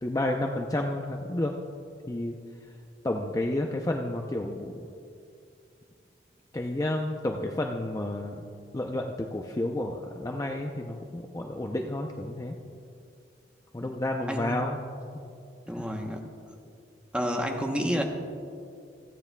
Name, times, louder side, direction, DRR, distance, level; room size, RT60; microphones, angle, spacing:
voice 1, 0.0-1.5 2.1-2.4 3.0-4.9 6.5-8.4 8.7-12.5 13.7-14.8 15.7-15.8, left 1 dB, 20° left, 2 dB, 0.5 m, -31 dB
voice 2, 15.7-16.2 17.1-18.0, equal, 5° right, 2 dB, 0.9 m, -29 dB
28.5 x 9.7 x 2.2 m, 2.4 s
head